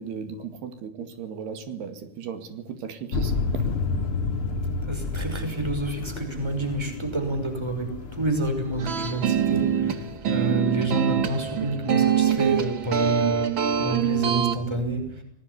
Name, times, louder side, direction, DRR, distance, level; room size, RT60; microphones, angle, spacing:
voice 1, 0.0-3.6, right 7 dB, 80° right, 9 dB, 4.2 m, -36 dB
sound 1, 3.1-10.2, left 3 dB, 40° left, 2.9 m, -31 dB
voice 2, 4.9-13.5 13.8-15.2, right 2 dB, 5° right, 6 dB, 5.3 m, -28 dB
sound 2, 8.8-14.6, right 8 dB, 50° right, 1.5 m, -24 dB
26.0 x 19.5 x 9.8 m, 0.67 s
omnidirectional pair, 4.6 m